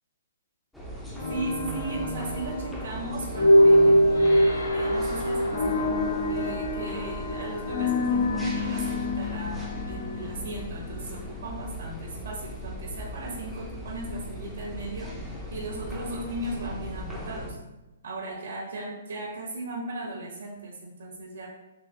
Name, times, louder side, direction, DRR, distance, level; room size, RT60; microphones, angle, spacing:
sound 1, 0.7-17.5, equal, 5° left, 0.6 m, -38 dB
sound 2, 1.2-11.2, equal, 60° left, 0.7 m, -24 dB
voice 1, 1.3-4.2 4.7-5.9 6.3-15.1 15.5-17.6 18.0-21.5, right 2 dB, 75° right, -2 dB, 1.1 m, -36 dB
sound 3, 4.1-8.9, left 2 dB, 90° left, 1.0 m, -41 dB
3.9 x 2.8 x 2.8 m, 1.0 s
hypercardioid pair, 130°, 0 cm